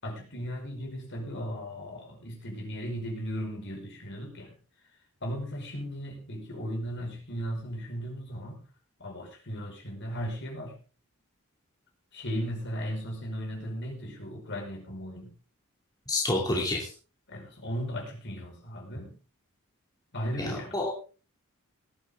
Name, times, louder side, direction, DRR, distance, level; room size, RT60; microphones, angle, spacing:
voice 1, 0.0-4.6 5.2-8.7 9.0-10.8 12.1-15.4 17.3-19.2 20.1-20.8, equal, 55° left, 2 dB, 5.3 m, -36 dB
voice 2, 16.1-16.9 20.4-20.9, left 2 dB, 15° left, -1 dB, 2.8 m, -28 dB
18.0 x 11.5 x 3.6 m, 0.36 s
head